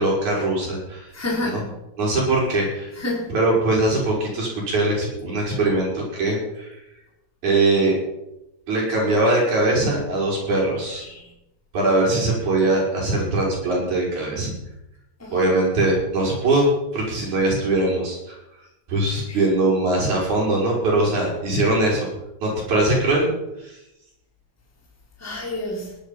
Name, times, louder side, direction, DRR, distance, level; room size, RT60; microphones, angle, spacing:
voice 1, 0.0-1.1 1.4-1.6 2.0-2.9 3.3-6.8 7.4-7.9 8.7-11.1 11.7-14.5 15.3-18.4 18.9-22.1 22.4-23.3 23.6-23.8, right 2 dB, 80° right, -3 dB, 7.2 m, -21 dB
voice 2, 1.1-1.7 3.0-3.3 11.0-11.3 15.2-15.3 19.3-19.4 25.2-26.0, left 2 dB, 5° left, -3 dB, 3.6 m, -29 dB
18.5 x 11.5 x 5.8 m, 0.89 s
omnidirectional pair, 3.3 m